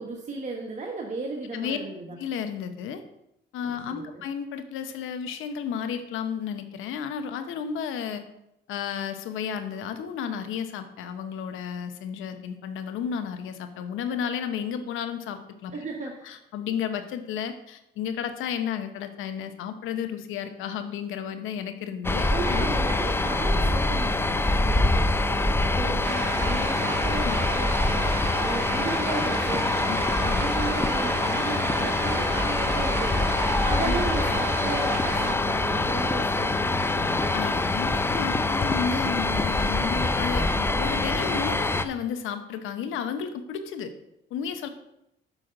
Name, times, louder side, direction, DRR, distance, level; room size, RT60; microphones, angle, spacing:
voice 1, 0.0-2.2 3.9-4.2 15.7-16.4 22.3-37.3, right 3 dB, 35° right, 1 dB, 1.1 m, -35 dB
voice 2, 2.2-3.0 3.5-8.2 8.7-15.7 16.2-22.7 27.2-27.4 29.9-30.0 30.3-30.4 33.8-34.0 37.3-43.9 44.3-44.7, left 7 dB, 90° left, 8 dB, 0.9 m, -32 dB
sound 1, 22.0-41.8, left 2 dB, 10° left, 0.4 m, -25 dB
sound 2, 26.0-35.3, right 8 dB, 55° right, 0.7 m, -35 dB
6.3 x 4.8 x 6.4 m, 0.82 s
cardioid pair, 90°, 20 cm